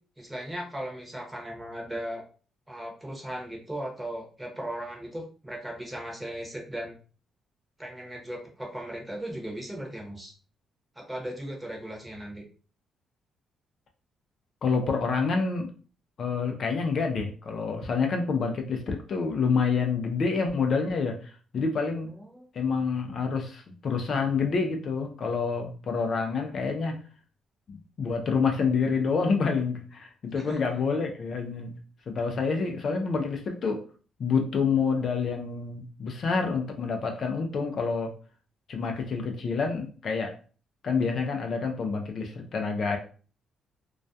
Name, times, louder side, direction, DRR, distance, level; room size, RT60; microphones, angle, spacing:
voice 1, 0.2-2.2 2.7-6.9 7.8-10.3 10.9-12.4 22.1-22.5 30.3-30.8, right 1 dB, 10° right, 0 dB, 0.8 m, -37 dB
voice 2, 14.6-15.7 16.2-22.1 22.5-27.0 27.7-31.7 32.1-33.8 34.2-38.1 38.7-40.4 40.8-43.0, left 5 dB, 55° left, 3 dB, 0.4 m, -28 dB
2.3 x 2.1 x 2.6 m, 0.39 s
cardioid pair, 90°, 0 cm